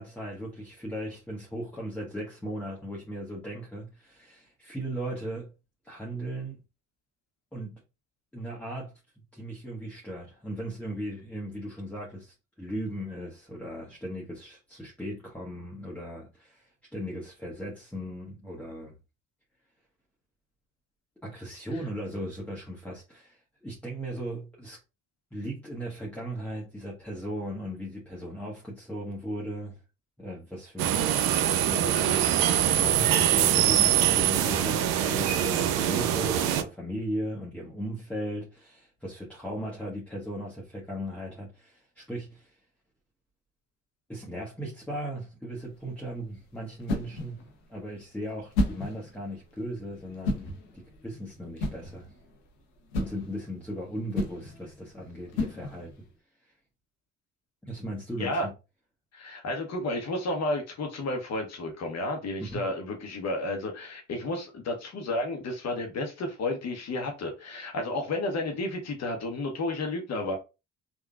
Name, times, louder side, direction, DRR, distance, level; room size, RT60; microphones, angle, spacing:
voice 1, 0.0-5.5 5.8-6.6 7.5-7.8 8.3-18.9 21.2-24.8 25.3-29.8 30.2-30.9 31.7-32.2 32.8-42.5 44.1-47.4 47.7-52.1 53.0-55.9 57.6-58.5 62.4-62.7, right 1 dB, 5° left, 1.2 m, -37 dB
sound 1, 30.8-36.6, right 10 dB, 75° right, 0.5 m, -23 dB
sound 2, 45.6-56.1, left 2 dB, 90° left, 0.8 m, -35 dB
voice 2, 59.1-70.4, left 2 dB, 50° left, 0.9 m, -32 dB
3.7 x 2.3 x 2.3 m
hypercardioid pair, 55°, 33 cm